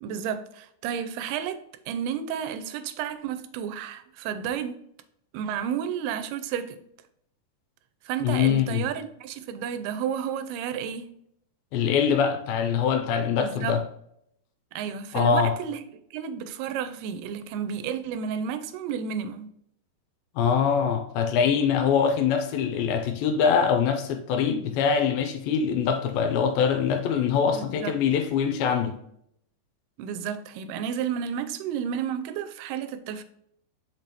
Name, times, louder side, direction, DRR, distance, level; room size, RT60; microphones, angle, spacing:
voice 1, 0.0-4.8 5.3-6.8 8.1-11.1 13.4-13.8 14.7-15.8 16.1-19.5 27.5-27.9 30.0-33.2, right 8 dB, 90° right, 2.6 m, -32 dB
voice 2, 8.2-8.9 11.7-13.8 15.1-15.5 20.4-29.0, left 7 dB, 80° left, 2.3 m, -23 dB
6.1 x 5.3 x 2.9 m
omnidirectional pair, 4.5 m